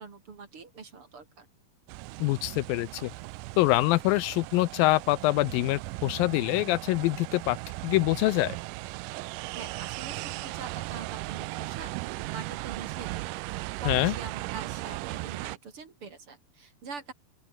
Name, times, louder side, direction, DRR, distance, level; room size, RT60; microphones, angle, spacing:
voice 1, 0.0-1.5 9.5-17.1, right 5 dB, 40° right, 3.3 m, -44 dB
sound 1, 1.9-15.6, right 21 dB, 85° right, 1.9 m, -37 dB
voice 2, 2.2-3.1 3.6-7.6 7.8-8.6 13.9-14.1, left 19 dB, 80° left, 2.3 m, -25 dB
open air
omnidirectional pair, 4.3 m